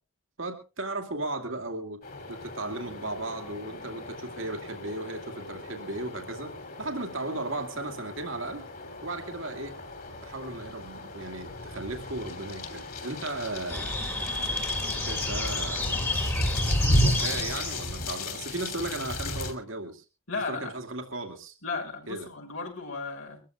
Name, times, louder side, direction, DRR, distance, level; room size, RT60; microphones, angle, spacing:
voice 1, 0.4-2.0 2.3-6.5 6.8-8.6 9.0-9.7 10.2-14.0 14.9-16.0 17.0-20.0 20.5-21.5 22.1-22.3, right 2 dB, 70° right, 5 dB, 2.3 m, -36 dB
sound 1, 2.0-19.5, left 1 dB, 45° left, 3.1 m, -34 dB
sound 2, 13.7-18.1, left 2 dB, 10° left, 1.8 m, -31 dB
voice 2, 20.3-20.7 21.6-23.4, left 4 dB, 85° left, 0 dB, 6.4 m, -35 dB
24.0 x 14.5 x 2.3 m, 0.31 s
head